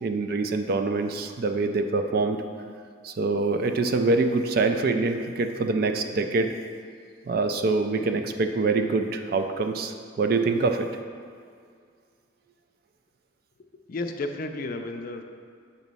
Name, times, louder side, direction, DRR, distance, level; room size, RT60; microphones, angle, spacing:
voice 1, 0.0-2.4 3.0-6.5 7.3-10.9, right 3 dB, 50° right, 7 dB, 0.3 m, -25 dB
voice 2, 13.9-15.2, left 2 dB, 45° left, 5 dB, 0.4 m, -32 dB
6.9 x 3.1 x 5.3 m, 2.1 s
head